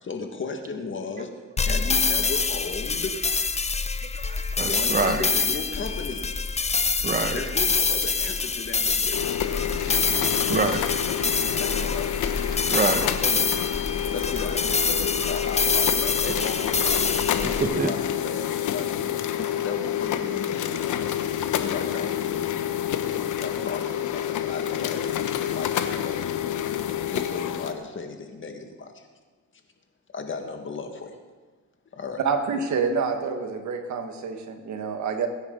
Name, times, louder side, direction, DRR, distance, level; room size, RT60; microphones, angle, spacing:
voice 1, 0.0-3.5 4.6-6.4 7.3-9.8 11.6-12.2 13.2-13.7 14.0-18.9 19.4-21.1 21.5-22.7 23.1-25.2 25.5-26.2 26.7-29.1 30.1-31.2 31.9-32.2, left 4 dB, 40° left, 4 dB, 2.0 m, -35 dB
sound 1, 1.6-17.6, left 4 dB, 20° left, 0.8 m, -26 dB
voice 2, 4.1-5.3 7.0-7.4 10.0-10.2 10.5-10.9 12.6-13.1 17.7-17.9, right 3 dB, 30° right, 6 dB, 1.4 m, -26 dB
sound 2, 9.0-17.0, right 3 dB, 50° right, 2.7 m, -45 dB
sound 3, 9.1-27.7, left 10 dB, 80° left, 1.1 m, -28 dB
voice 3, 32.2-35.3, right 5 dB, 70° right, 5 dB, 1.9 m, -27 dB
22.0 x 10.0 x 4.0 m, 1.4 s
cardioid pair, 90°, 30 cm